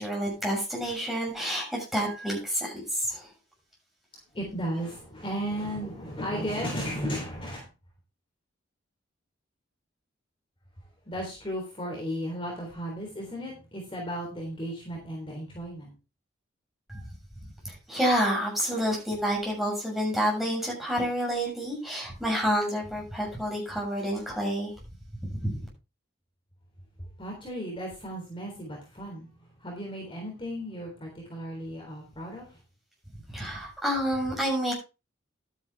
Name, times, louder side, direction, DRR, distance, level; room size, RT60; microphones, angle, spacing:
voice 1, 0.0-3.3 16.9-17.0 17.6-24.7 25.3-25.6 33.3-34.7, equal, ahead, -3 dB, 6.9 m, -29 dB
voice 2, 4.3-7.7 11.1-15.9 27.0-32.6, equal, 25° left, 0 dB, 3.6 m, -35 dB
12.0 x 10.0 x 3.5 m, 0.28 s
head